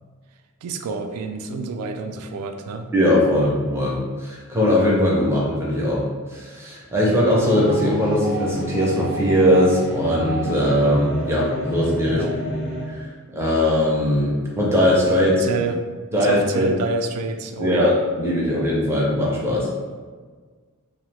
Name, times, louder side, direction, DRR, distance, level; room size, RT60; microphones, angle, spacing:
voice 1, 0.6-2.9 12.1-12.4 15.4-15.8 16.2-17.9, right 4 dB, 80° right, 5 dB, 0.3 m, -28 dB
voice 2, 2.9-6.0 6.3-12.2 12.9-15.7 16.1-16.7 17.6-19.7, left 1 dB, 10° right, -5 dB, 0.4 m, -20 dB
sound 1, 7.4-12.8, right 1 dB, 60° left, 0.8 m, -28 dB
2.9 x 2.1 x 3.2 m, 1.5 s
head